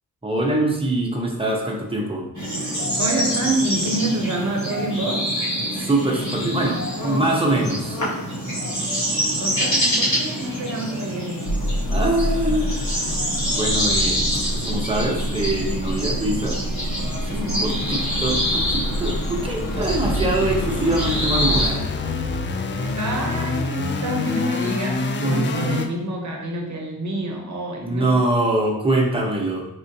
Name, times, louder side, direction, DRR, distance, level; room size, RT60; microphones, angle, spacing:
voice 1, 0.2-2.2 5.7-8.0 11.9-13.1 13.5-14.2 14.5-16.6 17.2-21.9 25.2-25.8 27.8-29.7, right 2 dB, 15° right, -1 dB, 0.8 m, -24 dB
sound 1, 2.3-21.7, equal, 50° left, 1.2 m, -26 dB
voice 2, 3.0-5.3 9.4-11.6 17.3-17.8 23.0-28.3, right 1 dB, 50° right, 1 dB, 0.8 m, -27 dB
sound 2, 11.5-25.9, left 1 dB, 35° left, 0.4 m, -27 dB
4.3 x 2.4 x 2.7 m, 0.83 s
cardioid pair, 75°, 36 cm